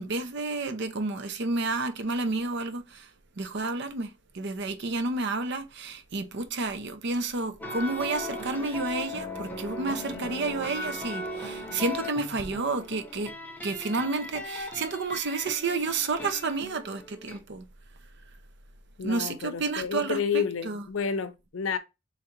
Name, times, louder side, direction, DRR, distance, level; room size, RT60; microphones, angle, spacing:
voice 1, 0.0-3.1 3.4-13.3 13.6-17.7 19.0-20.8, right 3 dB, 65° right, 0.7 m, -30 dB
sound 1, 7.6-17.4, left 1 dB, 10° left, 0.8 m, -38 dB
voice 2, 19.0-21.8, left 6 dB, 90° left, 0.5 m, -30 dB
3.7 x 3.3 x 4.3 m
head